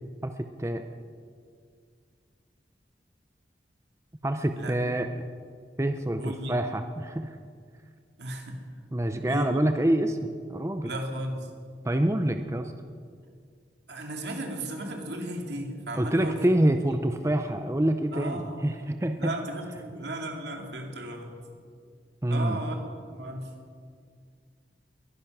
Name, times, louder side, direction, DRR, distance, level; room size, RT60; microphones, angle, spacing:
voice 1, 0.2-0.8 4.2-5.1 5.8-7.4 8.9-10.9 11.8-12.7 15.9-19.4 22.2-22.6, right 1 dB, 15° right, 7 dB, 0.6 m, -26 dB
voice 2, 4.6-5.0 6.2-6.6 8.2-8.6 9.2-9.5 10.8-11.5 13.9-16.5 16.8-17.0 18.1-18.7 19.2-21.3 22.3-22.8 23.1-23.5, right 1 dB, 80° right, 2 dB, 2.4 m, -35 dB
21.5 x 10.5 x 6.0 m, 2.1 s
head